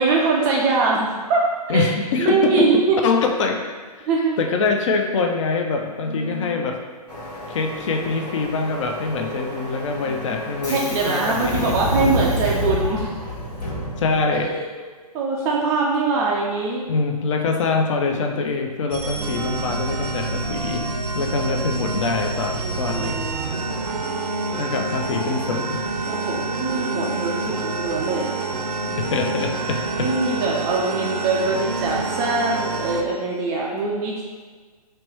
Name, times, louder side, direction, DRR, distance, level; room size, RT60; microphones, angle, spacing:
voice 1, 0.0-1.4 1.7-1.9 2.2-3.0 4.1-4.4 6.0-6.6 10.0-13.1 14.4-14.6 15.1-16.8 19.2-20.0 21.3-21.4 22.6-23.7 26.1-28.3 30.0-34.2, right 3 dB, 15° right, -2 dB, 0.3 m, -23 dB
voice 2, 1.7-3.6 4.0-4.1 4.4-6.8 7.5-11.8 14.0-14.5 16.9-20.9 21.1-23.3 24.6-25.9 28.9-30.1, left 4 dB, 50° left, 3 dB, 0.5 m, -24 dB
Subway metro underground, 7.1-14.5, equal, 90° left, 1.4 m, -29 dB
sound 1, 18.9-33.0, right 3 dB, 70° right, 0.5 m, -27 dB
3.2 x 3.0 x 4.5 m, 1.5 s
figure-of-eight pair, 125°, 20 cm